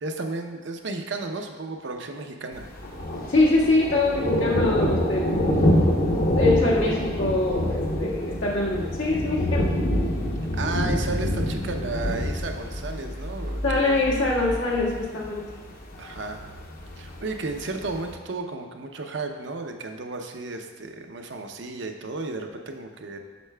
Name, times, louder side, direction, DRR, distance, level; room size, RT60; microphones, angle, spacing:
voice 1, 0.0-2.7 10.5-14.1 16.0-16.4 17.0-23.2, right 3 dB, 70° right, 4 dB, 0.6 m, -33 dB
Thunder, 2.5-18.1, left 1 dB, 50° left, 0.8 m, -26 dB
voice 2, 3.3-5.3 6.2-9.7 13.6-15.4, left 2 dB, 85° left, -5 dB, 1.6 m, -24 dB
8.1 x 6.5 x 2.2 m, 1.4 s
head